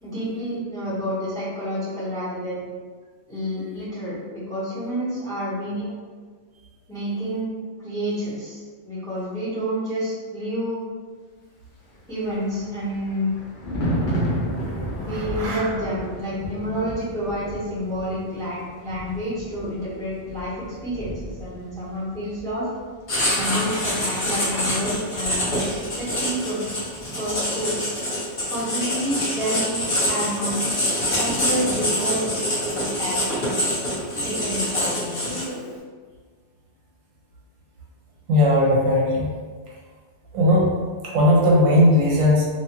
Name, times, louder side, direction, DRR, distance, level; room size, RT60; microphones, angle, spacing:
voice 1, 0.0-2.6 3.3-4.2 4.5-5.9 6.9-7.5 7.8-10.8 12.1-13.3 15.0-22.7 23.3-26.6 27.1-27.8 28.5-30.6 31.2-32.3 32.8-33.2 34.2-35.5, equal, 5° left, -11 dB, 0.8 m, -29 dB
Thunder, 11.9-26.4 26.7-27.0, equal, 65° left, 0.5 m, -33 dB
voice 2, 15.1-15.7 38.3-39.3 40.3-40.7 41.1-42.5, left 1 dB, 75° right, -3 dB, 1.0 m, -18 dB
Writing, 23.1-35.7, left 1 dB, 45° left, 1.0 m, -25 dB
2.7 x 2.2 x 2.8 m, 1.5 s
omnidirectional pair, 1.4 m